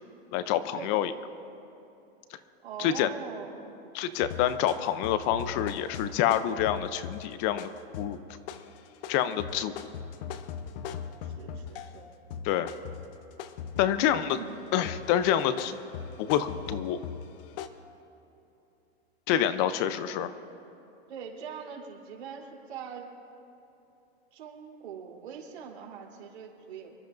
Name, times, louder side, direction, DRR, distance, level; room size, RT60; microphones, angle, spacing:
voice 1, 0.3-1.1 2.8-3.1 3.9-7.7 8.0-8.2 9.1-9.7 12.4-12.7 13.8-14.4 14.7-15.8 16.2-17.0 19.3-20.3, left 10 dB, 40° left, 13 dB, 0.6 m, -27 dB
voice 2, 2.6-3.7 11.2-12.1 13.7-14.7 21.1-23.1 24.3-27.0, right 7 dB, 80° right, -2 dB, 3.6 m, -42 dB
sound 1, 4.2-12.0 12.3-14.5 14.8-17.7, left 7 dB, 60° left, 0.9 m, -40 dB
26.5 x 13.0 x 2.6 m, 2.9 s
supercardioid pair, 140°, 32 cm